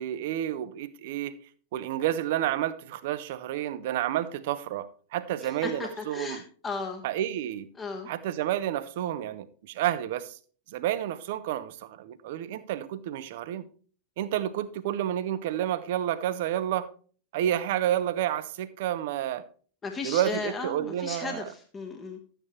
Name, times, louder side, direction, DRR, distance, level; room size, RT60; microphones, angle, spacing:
voice 1, 0.0-1.4 1.7-6.4 7.0-7.7 8.1-10.4 10.7-13.7 14.2-16.9 17.3-19.5 20.0-21.5, right 12 dB, 50° right, 0.9 m, -30 dB
voice 2, 5.4-7.0 7.8-8.1 19.8-22.2, left 4 dB, 20° left, 1.3 m, -35 dB
12.0 x 9.0 x 3.1 m
figure-of-eight pair, 90°, 0 cm